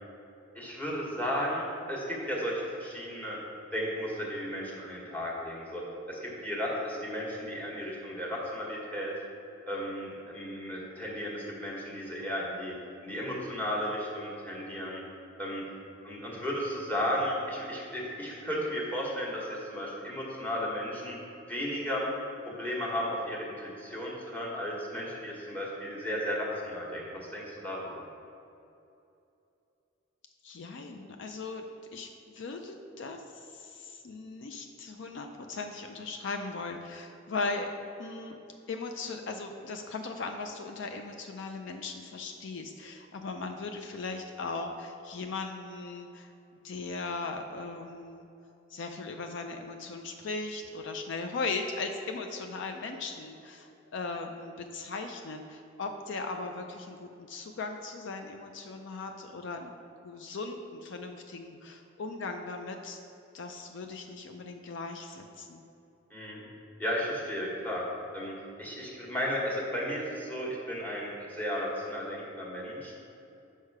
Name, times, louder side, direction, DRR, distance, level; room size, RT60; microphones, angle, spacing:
voice 1, 0.5-3.4 3.7-5.8 6.1-9.1 9.7-12.7 13.0-15.0 15.4-15.6 16.0-21.2 21.5-22.1 22.4-28.0 66.1-66.4 66.8-67.8 68.1-68.3 68.6-72.9, equal, 10° left, -4 dB, 1.4 m, -34 dB
voice 2, 30.4-31.6 31.9-37.7 38.0-38.4 38.7-46.3 46.6-48.3 48.7-59.7 60.0-63.0 63.3-65.6, left 3 dB, 65° left, 5 dB, 0.4 m, -38 dB
6.4 x 5.5 x 4.8 m, 2.8 s
head